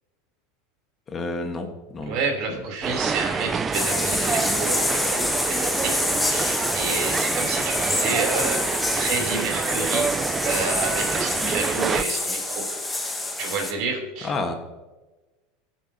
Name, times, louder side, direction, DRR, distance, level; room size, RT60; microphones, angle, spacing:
voice 1, 1.1-1.7 1.9-2.2 2.5-2.6 14.2-14.5, left 3 dB, 25° left, 5 dB, 1.5 m, -29 dB
voice 2, 2.1-12.7 13.4-14.3, right 4 dB, 55° right, 0 dB, 3.6 m, -30 dB
sound 1, 2.8-12.0, right 5 dB, 20° right, 0.4 m, -27 dB
sound 2, 3.7-13.7, left 2 dB, 10° left, 1.1 m, -27 dB
18.5 x 7.7 x 2.9 m, 1.2 s
supercardioid pair, 130°, 0 cm